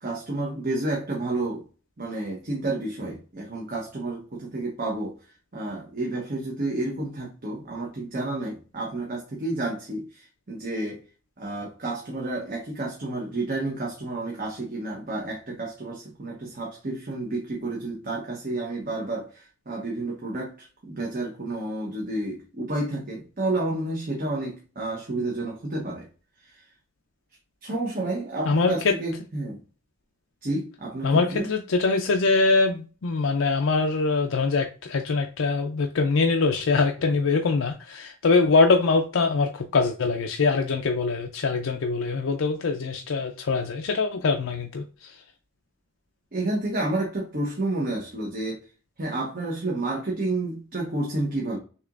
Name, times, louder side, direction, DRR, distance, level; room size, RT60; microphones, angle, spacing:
voice 1, 0.0-1.6 2.0-5.1 5.5-11.0 11.4-26.1 26.4-26.5 27.6-29.6 30.4-31.5 46.3-48.6 49.0-51.6, right 2 dB, 45° right, -2 dB, 1.0 m, -30 dB
voice 2, 28.5-28.9 31.0-45.2, left 4 dB, 70° left, 3 dB, 0.5 m, -23 dB
6.5 x 2.9 x 2.5 m, 0.35 s
head